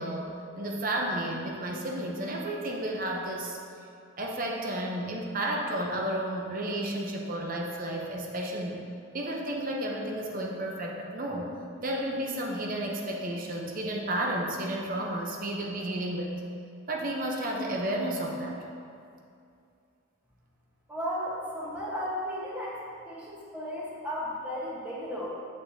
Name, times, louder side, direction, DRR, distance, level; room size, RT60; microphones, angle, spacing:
voice 1, 0.0-3.6 4.2-8.8 9.1-11.5 11.8-16.3 16.9-18.6, right 1 dB, 40° right, 0 dB, 0.7 m, -32 dB
voice 2, 20.9-22.8 23.1-25.3, equal, 5° right, -7 dB, 1.2 m, -34 dB
8.3 x 6.3 x 2.8 m, 2.5 s
head